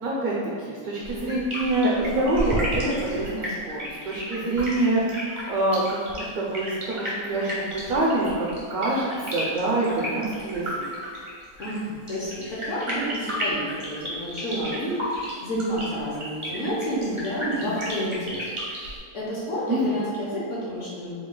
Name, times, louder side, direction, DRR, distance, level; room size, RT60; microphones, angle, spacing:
voice 1, 0.0-10.9 19.7-20.0, right 2 dB, 65° right, -5 dB, 0.9 m, -26 dB
sound 1, 1.0-19.0, equal, 30° right, 0.6 m, -33 dB
voice 2, 11.6-18.4 19.1-21.1, equal, 55° left, -7 dB, 0.9 m, -30 dB
4.3 x 2.4 x 3.7 m, 2.1 s
omnidirectional pair, 2.0 m